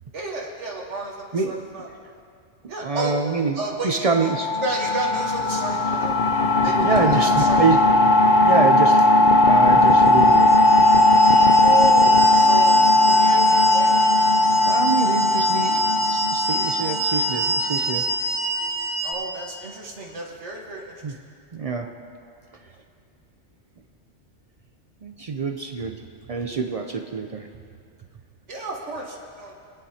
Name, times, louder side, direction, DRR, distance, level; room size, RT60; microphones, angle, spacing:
voice 1, 0.1-1.9 2.7-3.2 3.5-6.1 6.6-7.6 11.4-14.0 19.0-20.9 28.5-29.5, right 2 dB, 70° right, -1 dB, 1.6 m, -31 dB
voice 2, 2.8-4.6 6.7-7.9 8.4-9.1 9.5-10.6 14.7-18.0 21.0-21.2 21.5-21.9 25.0-26.0 26.3-27.5, right 4 dB, 50° right, 4 dB, 0.4 m, -26 dB
sound 1, 4.2-17.7, left 1 dB, 50° left, 0.6 m, -17 dB
sound 2, 10.1-19.1, right 1 dB, 20° right, 2.2 m, -27 dB
21.0 x 10.0 x 2.8 m, 2.3 s
omnidirectional pair, 1.2 m